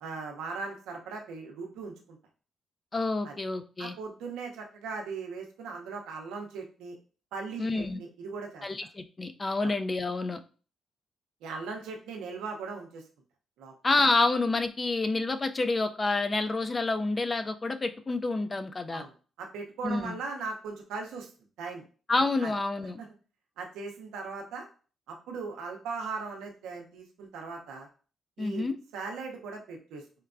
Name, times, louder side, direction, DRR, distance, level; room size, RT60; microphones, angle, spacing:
voice 1, 0.0-2.2 3.2-3.3 3.8-7.0 7.3-8.7 9.6-9.7 11.4-13.0 13.6-13.7 18.9-19.1 19.4-21.3 21.6-21.8 22.4-22.5 23.0-23.1 23.6-24.7 25.1-27.9 28.4-28.7 28.9-30.0, right 4 dB, 85° right, 2 dB, 0.6 m, -38 dB
voice 2, 2.9-3.9 7.6-8.0 8.6-10.4 13.8-19.0 19.8-20.2 22.1-23.0 28.4-28.8, left 3 dB, 35° left, 9 dB, 0.4 m, -28 dB
4.4 x 2.2 x 2.4 m, 0.38 s
supercardioid pair, 65°, 0 cm